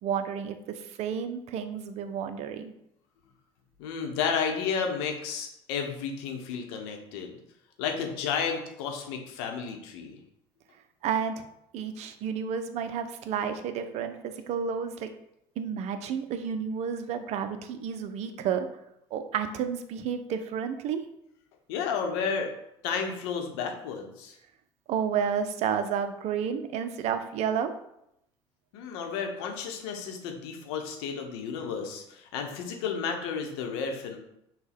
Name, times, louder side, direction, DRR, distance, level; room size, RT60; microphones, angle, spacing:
voice 1, 0.0-2.7 11.0-11.4 11.7-15.1 15.6-18.7 19.1-21.0 24.9-27.7, right 7 dB, 55° right, 9 dB, 0.5 m, -31 dB
voice 2, 3.8-7.4 7.8-10.2 21.7-22.5 22.8-24.4 28.7-34.2, left 6 dB, 70° left, 3 dB, 0.8 m, -32 dB
6.1 x 2.3 x 3.5 m, 0.79 s
hypercardioid pair, 65°, 14 cm